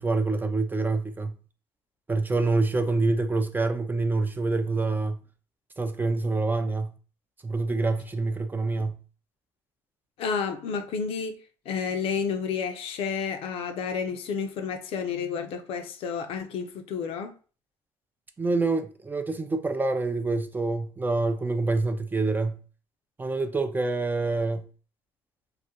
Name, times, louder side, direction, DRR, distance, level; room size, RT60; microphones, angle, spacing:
voice 1, 0.0-1.4 2.1-5.2 5.8-6.9 7.4-9.0 18.4-22.6 23.2-24.7, right 3 dB, 20° right, 0.3 m, -26 dB
voice 2, 10.2-11.4 11.7-17.3, left 6 dB, 65° left, 0.4 m, -30 dB
2.3 x 2.1 x 2.7 m
supercardioid pair, 70°, 10 cm